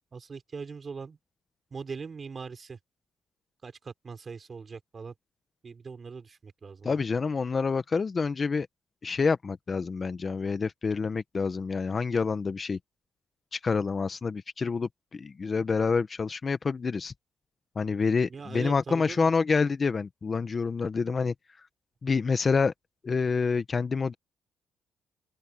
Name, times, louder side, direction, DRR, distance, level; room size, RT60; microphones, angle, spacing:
voice 1, 0.1-1.2 1.7-2.8 3.6-5.1 5.6-7.0 18.3-19.3, right 5 dB, 40° right, 6.4 m, -41 dB
voice 2, 6.8-8.7 9.0-12.8 13.5-17.1 17.7-21.3 22.0-22.7 23.0-24.1, left 4 dB, 35° left, 1.2 m, -27 dB
open air
cardioid pair, 90°, 0 cm